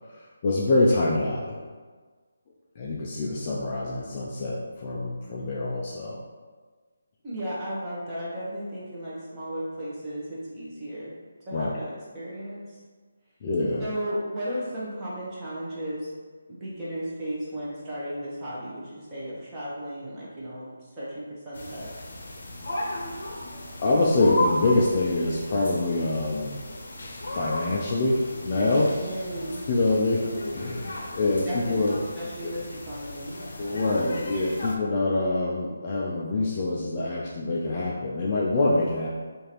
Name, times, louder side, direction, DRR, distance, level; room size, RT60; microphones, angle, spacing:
voice 1, 0.1-1.6 2.8-6.2 11.5-11.7 13.4-13.9 23.8-26.6 27.3-29.0 29.7-30.3 30.5-32.0 32.4-32.5 33.6-39.1, left 2 dB, 25° left, -4 dB, 0.3 m, -25 dB
voice 2, 7.2-11.1 11.5-12.8 13.8-16.1 16.5-21.9 29.0-29.6 31.3-33.3, equal, 10° right, -9 dB, 0.8 m, -35 dB
sound 1, 21.5-34.8, left 1 dB, 55° left, 0.7 m, -35 dB
4.8 x 2.5 x 2.9 m, 1.5 s
hypercardioid pair, 175°, 0 cm